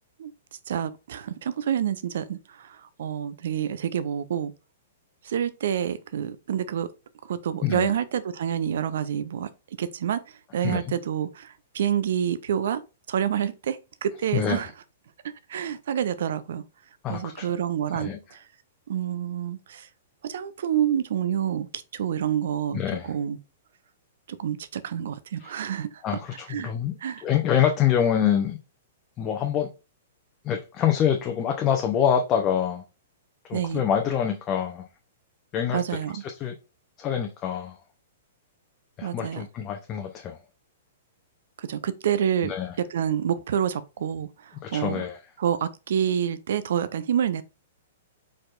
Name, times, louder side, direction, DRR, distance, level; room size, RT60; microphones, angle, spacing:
voice 1, 0.7-4.5 5.2-6.9 7.3-9.5 9.8-10.2 10.5-12.8 13.1-14.7 15.5-16.6 17.1-18.4 18.9-19.9 20.2-23.4 24.3-26.2 26.5-26.7 27.0-27.2 33.5-33.8 35.7-36.2 39.0-39.4 41.6-42.5 42.9-44.3 44.7-45.0 45.4-47.4, right 9 dB, 60° right, 0.5 m, -28 dB
voice 2, 10.6-10.9 14.3-14.6 17.0-17.5 17.9-18.2 22.7-23.1 25.4-25.5 26.0-26.9 27.2-28.6 29.2-29.7 30.4-32.8 33.5-34.9 35.5-35.8 36.2-36.5 37.0-37.8 39.0-40.4 42.4-42.8 44.6-45.2, left 9 dB, 30° left, 0.7 m, -25 dB
4.9 x 4.4 x 2.5 m
figure-of-eight pair, 105°, 0 cm